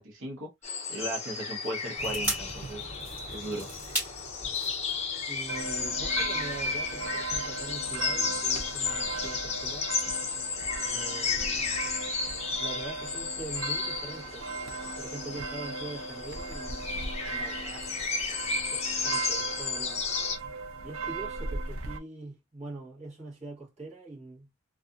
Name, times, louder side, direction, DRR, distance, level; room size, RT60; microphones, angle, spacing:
voice 1, 0.0-2.9 3.3-3.7, right 1 dB, 70° right, 0.9 m, -37 dB
sound 1, 0.6-20.4, left 5 dB, 30° left, 0.5 m, -33 dB
sound 2, 2.0-6.5 6.8-6.9, right 1 dB, 10° right, 1.3 m, -38 dB
voice 2, 5.3-9.9 10.8-11.7 12.6-14.5 15.0-18.4 18.7-20.1 20.8-24.5, right 2 dB, 35° right, 1.2 m, -43 dB
sound 3, 5.5-22.0, right 4 dB, 90° right, 0.5 m, -38 dB
2.6 x 2.4 x 2.3 m
head